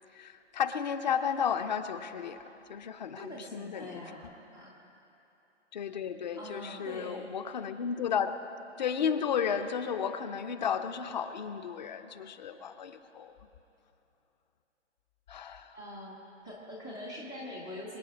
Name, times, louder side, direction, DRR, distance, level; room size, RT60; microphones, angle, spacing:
voice 1, 0.2-2.4 2.7-4.0 5.7-8.4 8.8-13.3 15.3-15.7, left 7 dB, 40° left, 10 dB, 0.7 m, -33 dB
voice 2, 3.1-4.7 6.3-7.4 15.7-18.0, left 1 dB, 5° left, -5 dB, 0.4 m, -43 dB
24.5 x 8.7 x 6.1 m, 2.9 s
figure-of-eight pair, 140°, 36 cm